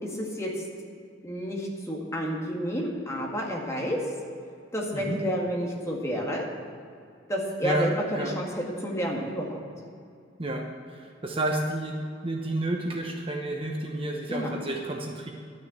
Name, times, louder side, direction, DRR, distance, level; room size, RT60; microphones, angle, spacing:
voice 1, 0.0-0.7 1.2-4.0 4.7-6.5 7.3-9.6 14.3-14.6, equal, 15° left, -2 dB, 1.9 m, -30 dB
voice 2, 10.4-15.3, right 1 dB, 30° right, 1 dB, 1.0 m, -31 dB
12.0 x 6.5 x 8.6 m, 2.4 s
head